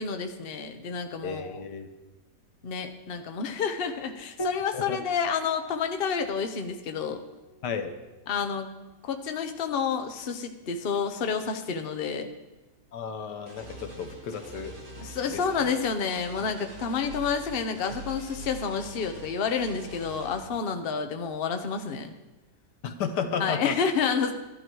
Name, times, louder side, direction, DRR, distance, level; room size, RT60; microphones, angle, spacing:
voice 1, 0.0-1.6 2.6-7.2 8.3-8.7 9.0-12.3 15.0-22.1 23.4-24.3, left 6 dB, 45° left, 6 dB, 0.9 m, -29 dB
voice 2, 1.2-1.9 4.7-5.0 7.6-7.9 12.9-14.7 15.3-15.4 22.8-23.7, left 6 dB, 85° left, 6 dB, 1.7 m, -33 dB
Piano, 4.4-9.2 10.9-11.7, left 1 dB, 25° left, 0.6 m, -43 dB
sound 1, 13.5-20.3, right 2 dB, 60° right, 4.0 m, -44 dB
13.0 x 11.5 x 4.6 m, 1.1 s
omnidirectional pair, 1.8 m